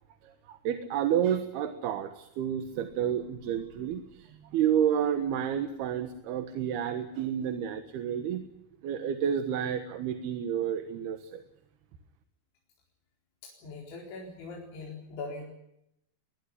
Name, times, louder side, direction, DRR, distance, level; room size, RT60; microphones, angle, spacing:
voice 1, 0.2-8.4 8.8-11.4, right 9 dB, 65° right, 8 dB, 3.1 m, -30 dB
voice 2, 13.4-15.5, left 3 dB, 80° left, -1 dB, 6.6 m, -41 dB
21.5 x 21.5 x 10.0 m, 0.80 s
omnidirectional pair, 5.2 m